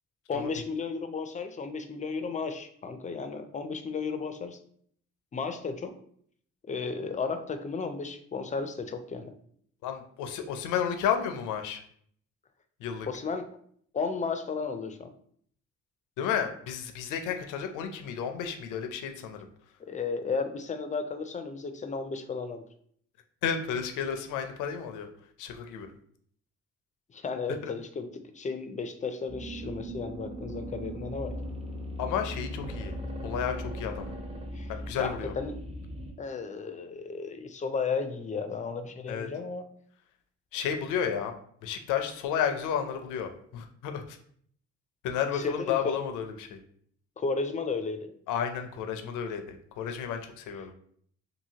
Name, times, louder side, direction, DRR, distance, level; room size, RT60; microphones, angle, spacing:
voice 1, 0.3-4.6 5.3-5.9 6.7-9.3 13.1-13.5 13.9-15.1 19.9-22.6 27.1-28.1 28.3-31.4 34.5-34.7 35.0-35.5 36.2-39.7 45.3-46.0 47.2-48.1, left 4 dB, 25° left, 7 dB, 0.3 m, -34 dB
voice 2, 9.8-11.8 12.8-13.1 16.2-19.4 23.4-25.1 25.4-25.9 27.6-27.7 32.0-33.0 33.2-34.2 34.7-35.3 39.1-39.3 40.5-41.3 41.6-44.2 45.0-46.6 48.3-50.7, left 8 dB, 90° left, 6 dB, 0.5 m, -32 dB
sound 1, 29.3-36.1, equal, 20° right, 0.6 m, -38 dB
2.7 x 2.7 x 2.8 m, 0.62 s
cardioid pair, 90°, 30 cm